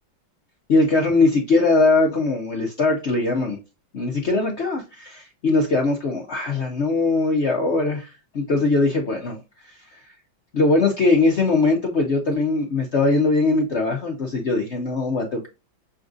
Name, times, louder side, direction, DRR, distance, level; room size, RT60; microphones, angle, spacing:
voice 1, 0.7-3.6 3.9-9.4 10.5-15.5, left 3 dB, 85° left, 0 dB, 0.6 m, -21 dB
6.8 x 2.4 x 2.6 m, 0.29 s
omnidirectional pair, 2.2 m